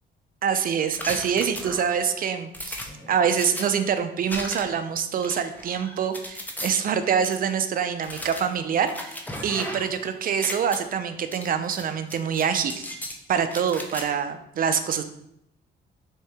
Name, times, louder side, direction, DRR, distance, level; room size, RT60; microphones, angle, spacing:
voice 1, 0.4-12.8 13.3-15.0, right 7 dB, 45° right, 9 dB, 0.4 m, -25 dB
sound 1, 0.9-2.0 2.5-3.6 4.3-4.8 5.2-6.7 7.2-7.4 8.0-10.0 10.3-10.8 11.3-11.8 12.1-13.2 13.5-14.0, left 1 dB, 10° left, 0.5 m, -36 dB
3.6 x 2.7 x 3.2 m, 0.77 s
cardioid pair, 90°, 20 cm